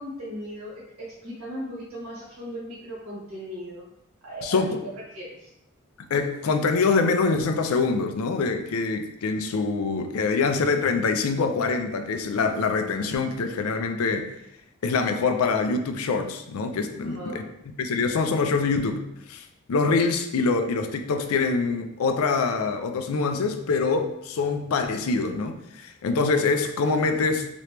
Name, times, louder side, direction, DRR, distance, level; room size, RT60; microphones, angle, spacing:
voice 1, 0.0-3.9 4.2-5.5 17.0-17.5, equal, 90° right, -7 dB, 1.5 m, -37 dB
voice 2, 4.4-4.8 6.0-14.3 14.8-17.4 17.8-19.0 19.3-27.5, left 4 dB, 80° left, 7 dB, 0.4 m, -25 dB
3.0 x 2.9 x 3.2 m, 0.81 s
head